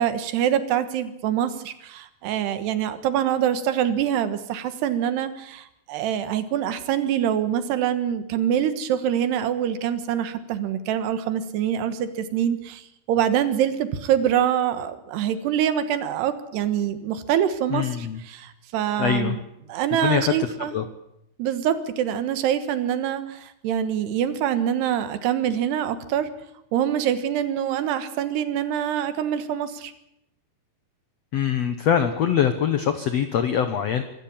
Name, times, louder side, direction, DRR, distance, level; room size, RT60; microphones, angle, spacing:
voice 1, 0.0-19.4 19.7-20.7 21.4-26.3 26.7-29.9, right 10 dB, 85° right, 11 dB, 3.4 m, -25 dB
voice 2, 17.7-18.2 19.0-19.4 20.0-20.8 31.3-34.0, left 8 dB, 85° left, 9 dB, 1.4 m, -23 dB
25.0 x 14.0 x 8.8 m, 0.81 s
omnidirectional pair, 4.7 m